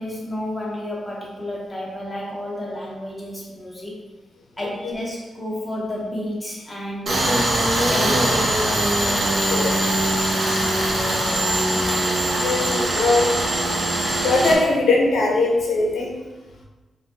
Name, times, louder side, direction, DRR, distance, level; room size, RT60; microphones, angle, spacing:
voice 1, 0.0-4.0 4.6-7.3 7.9-8.6, left 1 dB, 10° left, -6 dB, 0.7 m, -31 dB
Tools, 7.1-14.6, right 1 dB, 40° right, 0.5 m, -21 dB
voice 2, 12.3-13.4 14.2-16.1, left 3 dB, 75° left, -1 dB, 0.5 m, -21 dB
2.7 x 2.1 x 3.3 m, 1.2 s
wide cardioid pair, 155°, 0 cm